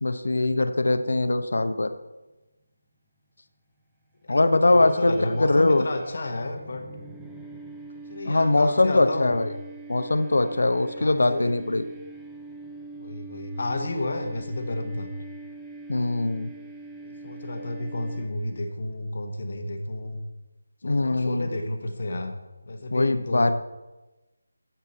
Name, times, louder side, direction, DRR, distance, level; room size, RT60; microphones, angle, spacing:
voice 1, 0.0-1.9 4.3-5.8 8.3-9.5 9.9-11.8 15.9-16.5 20.8-21.5 22.9-23.5, left 2 dB, 75° left, 9 dB, 1.0 m, -22 dB
voice 2, 4.2-6.8 8.1-9.4 10.8-11.5 13.0-15.1 17.0-20.2 20.8-22.4 22.6-23.5, left 2 dB, 50° left, 4 dB, 1.3 m, -31 dB
sound 1, 4.8-18.7, right 3 dB, ahead, 0.6 m, -44 dB
13.5 x 7.3 x 4.2 m, 1.1 s
figure-of-eight pair, 170°, 0 cm